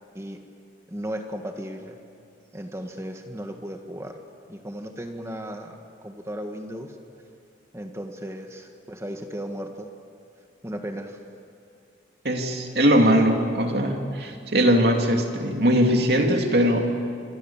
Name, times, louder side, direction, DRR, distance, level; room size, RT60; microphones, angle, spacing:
voice 1, 0.9-2.0 2.5-4.2 4.5-5.8 6.0-6.9 7.7-9.9 10.6-11.2, equal, 15° right, 4 dB, 1.6 m, -35 dB
voice 2, 12.2-16.9, equal, 65° right, 3 dB, 2.9 m, -20 dB
26.5 x 24.5 x 7.3 m, 2.4 s
head